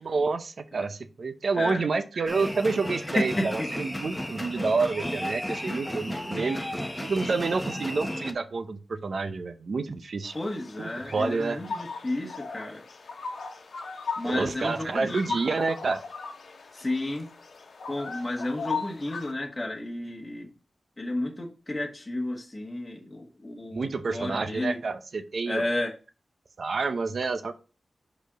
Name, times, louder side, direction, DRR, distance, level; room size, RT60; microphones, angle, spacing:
voice 1, 0.0-6.6 7.0-10.3 10.8-11.6 14.2-16.0 23.7-25.6 26.6-27.5, right 4 dB, 65° right, 10 dB, 0.7 m, -28 dB
sound 1, 2.3-8.3, equal, 5° left, 1.1 m, -34 dB
voice 2, 3.1-3.7 10.3-12.8 14.2-15.2 16.7-17.3 17.9-20.5 21.0-24.8 25.4-25.9, left 1 dB, 20° left, -1 dB, 1.4 m, -32 dB
sound 2, 10.2-19.3, left 4 dB, 85° left, 1.0 m, -38 dB
5.3 x 4.3 x 5.0 m, 0.34 s
wide cardioid pair, 75°, 0 cm